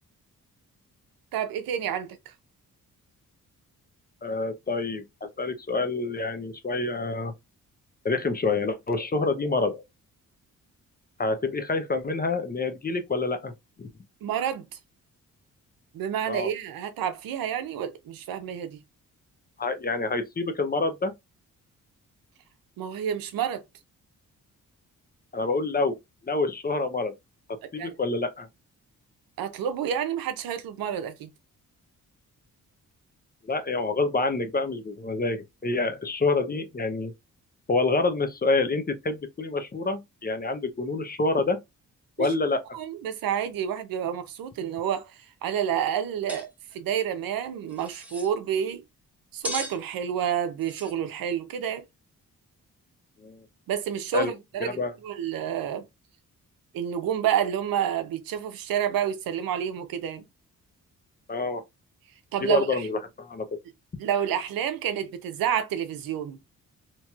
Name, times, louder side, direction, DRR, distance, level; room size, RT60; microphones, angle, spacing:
voice 1, 1.3-2.3 14.2-14.6 15.9-18.8 22.8-23.6 27.8-27.9 29.4-31.3 42.2-42.4 42.7-45.1 45.4-48.8 49.3-51.8 53.7-55.8 56.7-60.2 62.3-62.9 64.0-66.4, right 9 dB, 85° right, 0.6 m, -29 dB
voice 2, 4.2-7.3 8.0-9.8 11.2-13.5 13.8-13.9 16.2-16.5 19.6-21.1 25.3-26.0 26.2-27.1 27.7-28.5 33.4-37.1 37.7-41.6 42.2-42.6 53.2-53.4 54.1-54.3 54.6-54.9 61.3-61.6 62.4-63.5, left 3 dB, 25° left, 0.7 m, -27 dB
sound 1, 46.3-46.5 46.7-46.8 47.7-48.3 49.4-49.8 50.6-50.9, left 1 dB, 5° right, 0.9 m, -36 dB
2.9 x 2.9 x 2.3 m
cardioid pair, 65°, 34 cm